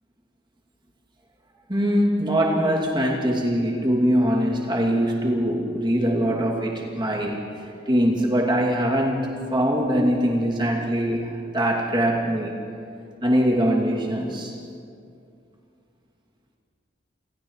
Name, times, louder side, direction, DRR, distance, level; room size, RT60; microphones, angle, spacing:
voice 1, 1.7-7.5 7.9-12.6 13.2-14.5, equal, 25° right, -2 dB, 2.7 m, -22 dB
29.0 x 27.5 x 3.3 m, 2.5 s
head